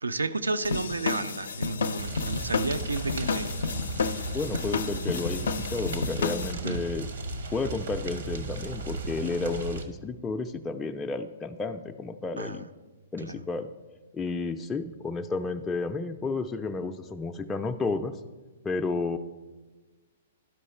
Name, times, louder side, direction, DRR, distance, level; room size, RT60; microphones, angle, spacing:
voice 1, 0.0-3.5 6.6-6.9 12.4-12.6 13.2-13.4, right 2 dB, 90° right, 12 dB, 0.4 m, -31 dB
sound 1, 0.6-6.5, left 5 dB, 75° left, 0.5 m, -31 dB
sound 2, 2.0-9.8, right 3 dB, 70° right, 1.0 m, -35 dB
voice 2, 4.3-7.1 7.5-12.7 13.1-13.7 14.1-18.2 18.6-19.2, left 3 dB, 15° left, 3 dB, 0.4 m, -32 dB
12.0 x 4.8 x 4.3 m, 1.2 s
hypercardioid pair, 120°, 0 cm